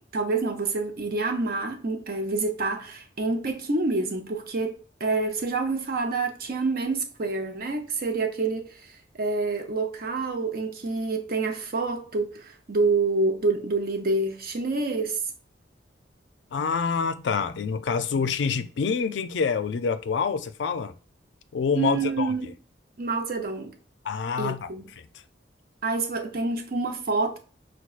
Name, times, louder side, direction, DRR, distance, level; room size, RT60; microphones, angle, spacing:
voice 1, 0.1-15.2 21.8-22.5 23.0-23.8 24.4-24.9 25.8-27.4, right 3 dB, 55° right, 0.7 m, -27 dB
voice 2, 16.5-20.9 21.5-22.3 24.0-24.7, left 5 dB, 80° left, 0.4 m, -26 dB
5.9 x 2.2 x 2.4 m
head